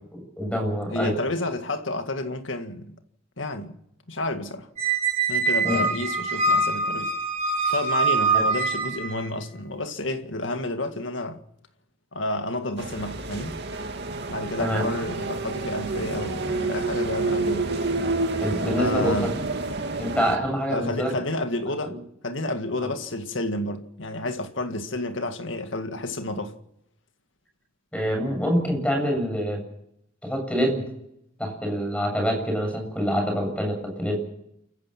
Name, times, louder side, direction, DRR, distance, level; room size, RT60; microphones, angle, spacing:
voice 1, 0.1-1.1 5.6-5.9 8.3-8.4 14.6-14.8 18.4-19.2 20.0-21.1 21.8-22.0 22.8-22.9 27.9-29.6 30.2-30.9 31.4-34.2, equal, 5° left, 7.6 m, -26 dB
voice 2, 0.9-3.0 3.4-3.8 4.1-4.7 5.3-7.1 7.7-11.4 12.1-13.6 14.3-17.7 18.8-19.3 20.7-22.0 22.2-26.6, left 2 dB, 70° left, 2.0 m, -30 dB
Squeak, 4.8-9.3, right 3 dB, 35° right, 5.3 m, -24 dB
sound 1, 12.8-20.4, right 2 dB, 60° right, 2.4 m, -29 dB
28.5 x 15.5 x 6.0 m
head